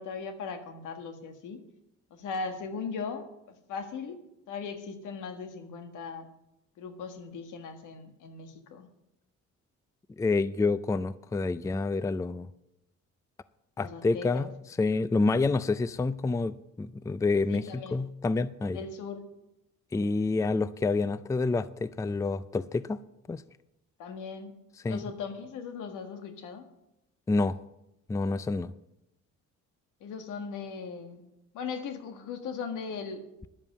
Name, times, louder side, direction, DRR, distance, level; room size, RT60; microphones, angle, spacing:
voice 1, 0.0-1.6 2.1-4.2 4.5-6.3 6.8-8.9 13.8-14.5 17.5-18.0 18.7-19.3 24.0-24.5 24.8-26.6 30.0-31.2 31.5-33.2, left 5 dB, 85° left, 7 dB, 1.6 m, -38 dB
voice 2, 10.2-12.5 13.8-14.5 14.8-18.8 19.9-23.0 23.3-23.4 24.8-25.0 27.3-27.6 28.1-28.7, left 3 dB, 10° left, 17 dB, 0.4 m, -28 dB
11.0 x 7.4 x 8.3 m, 0.87 s
cardioid pair, 90°, 30 cm